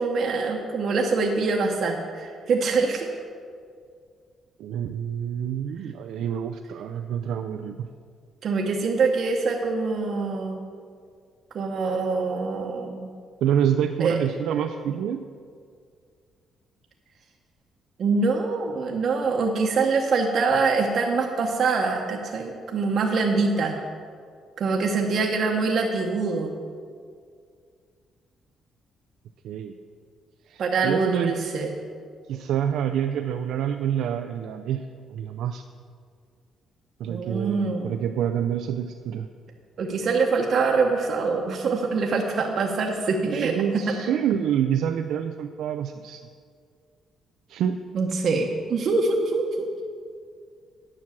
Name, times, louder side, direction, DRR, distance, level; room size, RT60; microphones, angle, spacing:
voice 1, 0.0-3.1 8.4-10.6 11.5-13.1 14.0-14.2 18.0-23.8 24.6-26.5 30.6-31.8 37.1-37.9 39.8-43.8 47.9-49.7, right 4 dB, 60° right, 0 dB, 1.0 m, -24 dB
voice 2, 4.6-7.9 13.4-15.2 29.4-29.7 30.5-31.4 32.3-35.6 37.0-39.3 43.2-46.2 47.5-47.8, right 9 dB, 85° right, 6 dB, 0.4 m, -27 dB
9.9 x 6.0 x 7.3 m, 2.1 s
cardioid pair, 90°, 0 cm